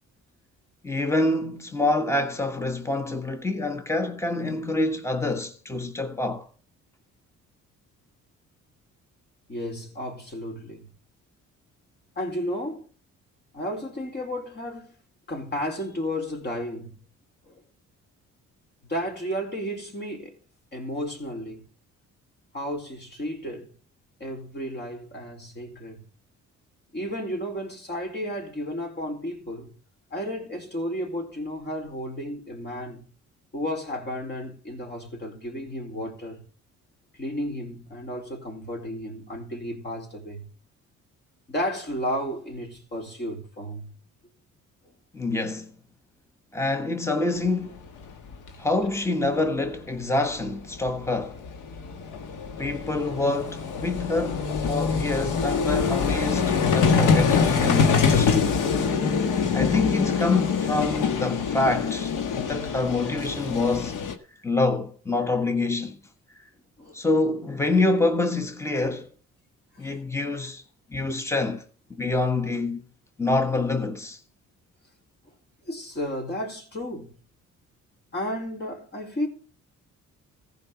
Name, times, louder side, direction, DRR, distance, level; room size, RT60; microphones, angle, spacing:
voice 1, 0.8-6.5 45.1-45.7 46.5-47.8 48.6-51.4 52.6-58.5 59.5-64.0 64.4-66.0 66.3-66.4 66.9-69.1 69.8-70.6 70.9-71.6 72.0-72.8 73.2-74.2, left 2 dB, 10° left, 1.5 m, -26 dB
voice 2, 9.5-10.9 12.2-12.8 13.5-15.0 15.3-17.0 17.5-17.6 18.9-20.4 20.7-21.7 22.5-23.7 24.2-26.0 26.9-29.7 30.1-33.1 33.5-36.4 37.2-40.5 41.5-43.9 44.9-45.0 66.8-67.0 69.7-70.1 75.7-77.1 78.1-79.3, equal, 35° left, 4.4 m, -33 dB
Vehicle, 48.0-48.1 48.3-48.5 50.5-50.6 50.8-64.1, left 5 dB, 80° left, 1.7 m, -24 dB
15.0 x 5.4 x 7.2 m
cardioid pair, 90°, 30 cm